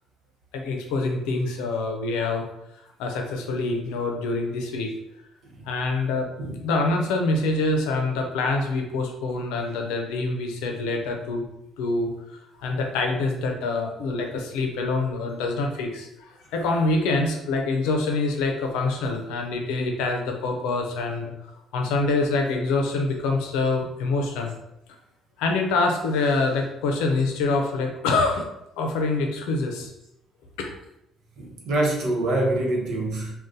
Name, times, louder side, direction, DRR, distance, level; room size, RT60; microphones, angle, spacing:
voice 1, 0.5-2.4 3.0-4.9 5.7-6.3 6.6-11.5 11.8-12.1 12.6-21.3 21.7-24.5 25.4-28.4 28.8-29.9 30.6-30.7, left 3 dB, 85° left, 2 dB, 0.6 m, -25 dB
voice 2, 31.4-33.3, right 1 dB, 70° right, -2 dB, 1.0 m, -25 dB
2.6 x 2.3 x 3.6 m, 0.83 s
supercardioid pair, 70°, 0 cm